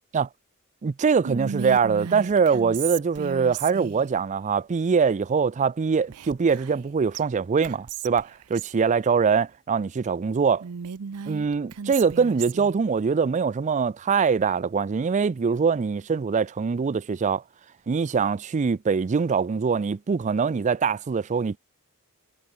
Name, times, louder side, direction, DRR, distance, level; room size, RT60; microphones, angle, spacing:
voice 1, 0.8-10.6 11.3-17.4 17.9-21.6, right 5 dB, 30° right, 0.4 m, -23 dB
Whispering, 1.2-4.1 6.1-6.9 7.1-7.2 7.6-8.8 10.6-12.7, right 7 dB, 80° right, 0.6 m, -35 dB
head